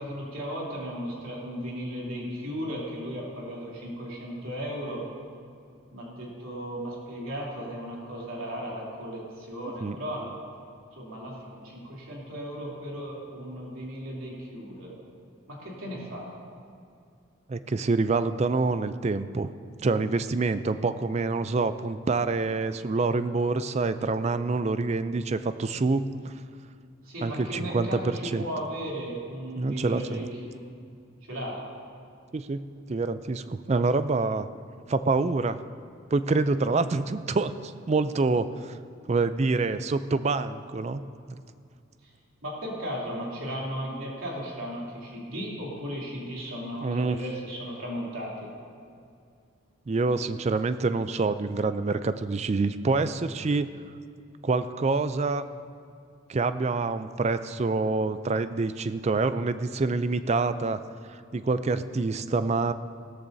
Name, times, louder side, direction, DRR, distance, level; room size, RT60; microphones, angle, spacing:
voice 1, 0.0-5.1 5.9-10.3 11.0-14.9 15.5-16.4 27.0-30.6 31.3-31.6 42.4-48.5, equal, 80° right, -5 dB, 3.1 m, -36 dB
voice 2, 17.5-19.5 19.8-26.3 27.2-28.5 29.6-30.3 32.3-34.5 34.9-35.6 36.1-38.8 39.1-41.0 41.3-41.4 46.8-47.2 49.9-53.7 54.4-55.4 56.3-60.8 61.1-62.7, right 3 dB, 30° right, 12 dB, 0.3 m, -26 dB
17.5 x 13.5 x 2.7 m, 2.3 s
head